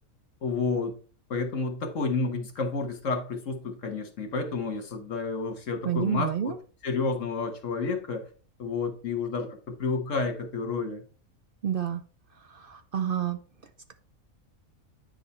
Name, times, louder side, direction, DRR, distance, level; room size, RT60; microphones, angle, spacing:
voice 1, 0.4-1.0 1.3-6.5 6.8-8.3 8.6-11.0, left 4 dB, 65° left, 6 dB, 1.6 m, -30 dB
voice 2, 5.8-6.6 11.6-12.0 12.5-13.4, right 9 dB, 55° right, 8 dB, 0.7 m, -29 dB
9.2 x 3.9 x 4.2 m, 0.38 s
omnidirectional pair, 1.4 m